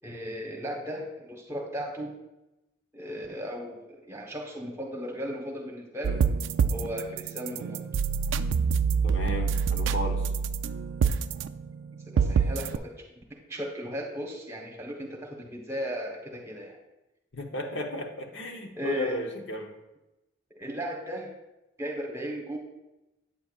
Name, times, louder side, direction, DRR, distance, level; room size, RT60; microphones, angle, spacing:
voice 1, 0.0-2.1 2.9-6.2 6.7-7.8 12.1-13.2 13.5-16.8 18.7-19.2 20.5-21.3 21.8-22.6, equal, 15° right, -1 dB, 1.1 m, -36 dB
sound 1, 6.0-12.8, right 6 dB, 75° right, 0.3 m, -27 dB
voice 2, 9.0-10.3 17.3-19.7, left 1 dB, 70° left, 2 dB, 0.9 m, -34 dB
8.6 x 6.9 x 2.4 m, 0.95 s
head